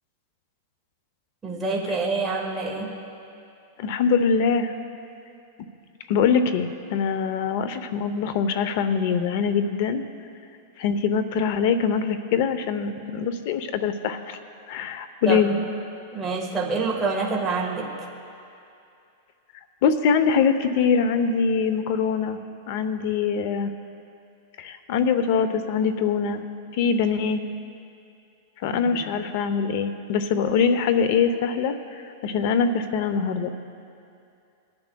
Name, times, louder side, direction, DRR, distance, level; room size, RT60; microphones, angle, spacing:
voice 1, 1.4-3.0 15.2-15.5 16.1-17.9 28.7-29.1, right 3 dB, 10° right, -3 dB, 1.4 m, -27 dB
voice 2, 3.8-4.7 6.1-10.0 10.8-14.4 14.7-15.5 19.8-22.4 22.7-23.7 24.6-26.4 26.7-27.4 28.6-31.8 32.2-33.5, left 6 dB, 55° left, 11 dB, 0.7 m, -23 dB
21.5 x 10.5 x 2.3 m, 2.6 s
supercardioid pair, 150°, 0 cm